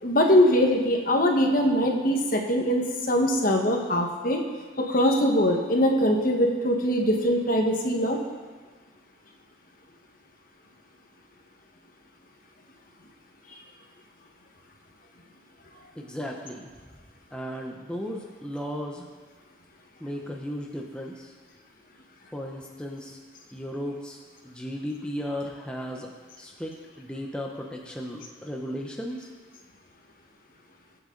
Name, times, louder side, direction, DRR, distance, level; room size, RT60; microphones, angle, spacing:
voice 1, 0.0-4.4 4.8-8.2, equal, 45° left, 2 dB, 1.5 m, -22 dB
voice 2, 16.0-16.7 17.3-19.0 20.0-21.3 22.3-23.2 23.5-24.2 24.4-26.1 26.4-29.3, equal, 5° left, -1 dB, 0.9 m, -35 dB
21.5 x 8.2 x 4.0 m, 1.5 s
head